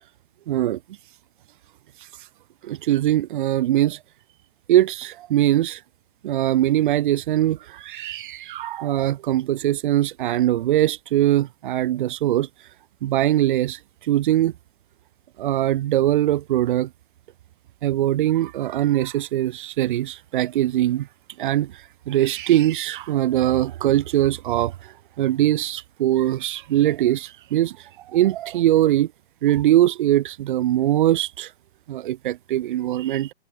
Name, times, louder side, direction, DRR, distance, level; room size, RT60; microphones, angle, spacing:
voice 1, 0.5-0.8 2.6-4.0 4.7-5.8 6.2-12.5 13.0-14.5 15.4-16.9 17.8-21.1 21.4-21.7 22.1-29.1 29.4-31.5 31.9-33.3, right 13 dB, 45° right, 2.1 m, -21 dB
figure-of-eight pair, 120°, 34 cm